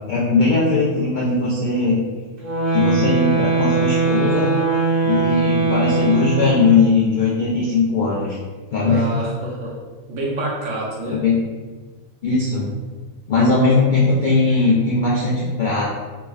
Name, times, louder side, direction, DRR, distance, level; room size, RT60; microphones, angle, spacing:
voice 1, 0.1-2.0 2.7-4.6 5.0-8.4 8.7-9.0 11.1-11.4 12.2-12.7 13.3-15.8, left 3 dB, 75° left, -7 dB, 0.4 m, -19 dB
sound 1, 2.4-6.9, right 4 dB, 45° right, 1.2 m, -20 dB
voice 2, 8.8-9.7 10.1-11.2, right 2 dB, 70° right, -4 dB, 1.2 m, -27 dB
3.4 x 3.1 x 2.3 m, 1.3 s
omnidirectional pair, 1.5 m